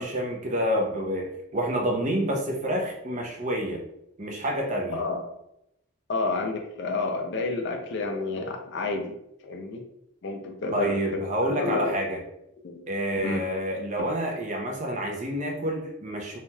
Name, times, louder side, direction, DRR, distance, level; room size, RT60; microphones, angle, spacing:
voice 1, 0.0-3.8 4.2-5.0 10.7-12.2 12.9-16.4, equal, 35° right, 1 dB, 0.5 m, -28 dB
voice 2, 4.9-5.2 6.1-9.1 9.4-9.8 10.2-12.0 12.6-12.8 13.2-13.4 14.0-14.1, left 3 dB, 55° left, 3 dB, 0.4 m, -30 dB
3.1 x 2.8 x 2.2 m, 0.81 s
head